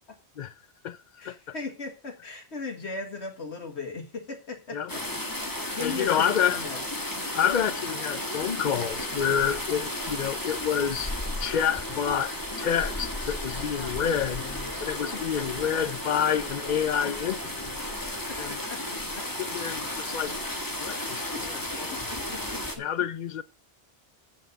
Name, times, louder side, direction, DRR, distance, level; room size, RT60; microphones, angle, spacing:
voice 1, 1.2-5.0 5.4-6.8 13.6-14.8 15.1-15.4 17.0-17.1 18.3-19.3 21.3-21.6 21.9-22.8, left 4 dB, 75° left, 2.1 m, -38 dB
sound 1, 4.9-22.8, left 1 dB, 20° left, 1.7 m, -34 dB
voice 2, 5.8-6.6 7.3-11.1 11.4-14.4 14.8-17.8 18.4-18.6 19.4-20.3 20.8-22.1 22.8-23.4, left 8 dB, 50° left, 0.7 m, -28 dB
8.4 x 7.6 x 6.6 m
omnidirectional pair, 1.1 m